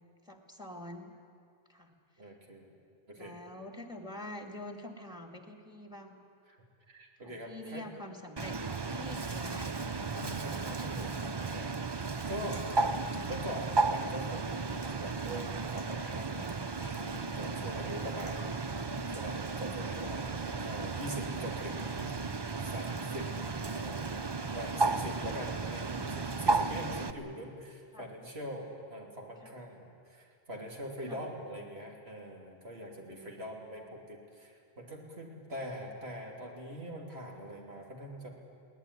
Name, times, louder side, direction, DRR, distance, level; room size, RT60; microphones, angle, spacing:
voice 1, 0.3-1.1 1.7-1.9 3.2-6.2 7.2-9.8 13.9-14.3 17.8-18.1 25.4-25.7 27.9-28.1 29.4-29.5 31.1-31.2 33.1-33.9, left 1 dB, 5° right, 4 dB, 2.1 m, -47 dB
voice 2, 2.2-2.7 3.1-3.4 6.9-7.9 10.1-11.7 12.3-12.7 13.3-18.5 19.1-22.1 22.6-23.3 23.7-24.2 24.5-38.3, equal, 75° right, 0 dB, 3.4 m, -43 dB
Bird, 8.4-27.1, right 3 dB, 30° right, 0.7 m, -34 dB
22.0 x 17.5 x 9.9 m, 2.4 s
omnidirectional pair, 1.1 m